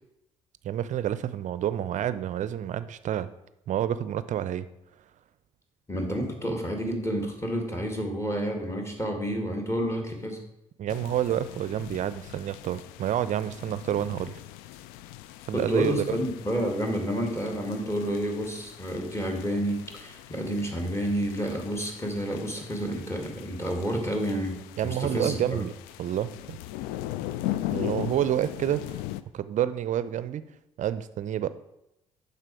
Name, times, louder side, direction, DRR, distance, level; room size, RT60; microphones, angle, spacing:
voice 1, 0.6-3.3 3.7-4.7 10.8-14.4 15.5-16.2 24.8-26.6 27.7-29.0 29.3-30.4 30.8-31.5, right 11 dB, 45° right, 15 dB, 0.5 m, -29 dB
voice 2, 5.9-10.4 15.5-25.6, equal, 15° left, 3 dB, 1.9 m, -30 dB
sound 1, 10.9-29.2, left 14 dB, 65° left, 0.4 m, -39 dB
7.4 x 5.7 x 4.7 m, 0.86 s
figure-of-eight pair, 45°, 17 cm